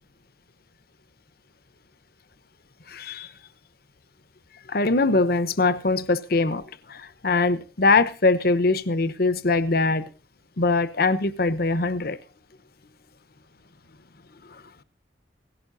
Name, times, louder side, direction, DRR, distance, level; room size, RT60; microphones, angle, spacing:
voice 1, 2.9-3.3 4.7-6.6 6.9-10.1 10.6-12.2 14.5-14.8, left 3 dB, 60° left, 1.0 m, -22 dB
18.0 x 16.5 x 2.7 m
head